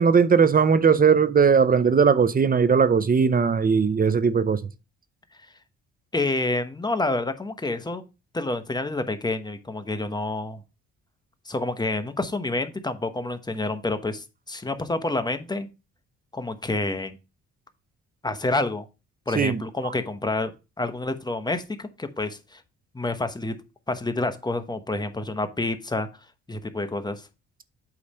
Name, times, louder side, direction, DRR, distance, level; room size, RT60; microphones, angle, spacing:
voice 1, 0.0-4.6 19.3-19.9, right 6 dB, 30° right, 0.7 m, -19 dB
voice 2, 6.1-8.0 8.3-10.6 11.5-15.7 16.3-17.2 18.2-18.8 19.3-20.5 20.8-22.6 22.9-23.5 23.9-26.1 26.5-27.3, left 2 dB, 15° left, 1.0 m, -28 dB
8.5 x 3.3 x 5.5 m
cardioid pair, 90°, 30 cm